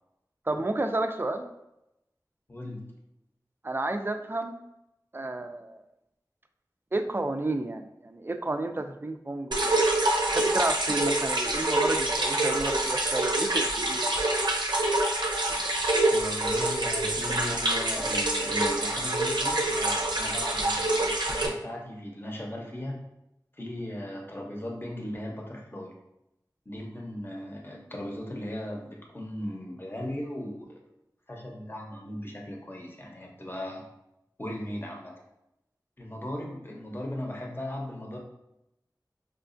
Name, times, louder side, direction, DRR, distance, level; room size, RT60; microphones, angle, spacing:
voice 1, 0.5-1.5 3.6-4.6 5.1-5.8 6.9-9.8 10.3-14.3, right 2 dB, 30° right, 7 dB, 0.3 m, -31 dB
voice 2, 2.5-2.8 16.1-23.0 23.6-25.9 26.7-30.8 31.3-33.8 34.4-35.1 36.0-38.2, left 1 dB, 30° left, -1 dB, 0.7 m, -37 dB
sound 1, 9.5-21.5, right 2 dB, 85° right, 0.5 m, -26 dB
4.9 x 2.3 x 2.5 m, 0.86 s
wide cardioid pair, 50°, 7 cm